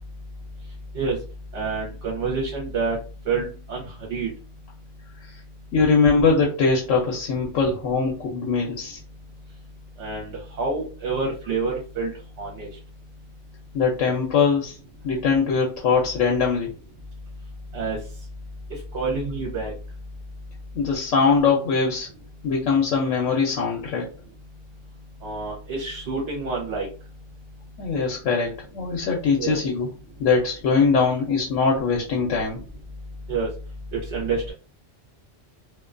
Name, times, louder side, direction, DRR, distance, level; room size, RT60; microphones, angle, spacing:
voice 1, 1.5-3.0 3.3-4.3 10.0-12.1 12.4-12.7 17.7-18.0 18.9-19.7 25.2-26.9 29.4-29.6 33.3-33.5 34.1-34.5, right 4 dB, 70° right, -1 dB, 1.0 m, -27 dB
voice 2, 5.7-9.0 13.7-14.8 15.0-16.7 20.7-22.1 22.4-24.0 27.8-29.9 30.2-32.6, left 5 dB, 85° left, -1 dB, 0.9 m, -22 dB
2.4 x 2.2 x 2.4 m, 0.36 s
omnidirectional pair, 1.2 m